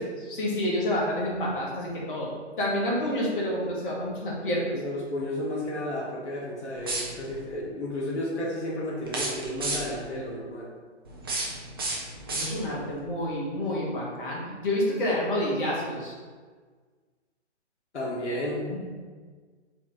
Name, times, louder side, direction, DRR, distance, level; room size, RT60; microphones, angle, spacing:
voice 1, 0.2-2.3 2.6-4.8 12.3-16.1 18.7-18.8, left 1 dB, 45° left, -4 dB, 1.2 m, -28 dB
voice 2, 4.7-10.7 17.9-18.8, left 1 dB, 70° left, -4 dB, 1.2 m, -32 dB
sound 1, 6.8-7.4 9.0-10.1 11.0-12.9, right 2 dB, 20° right, 0.4 m, -33 dB
4.1 x 2.5 x 4.7 m, 1.5 s
figure-of-eight pair, 135°, 35 cm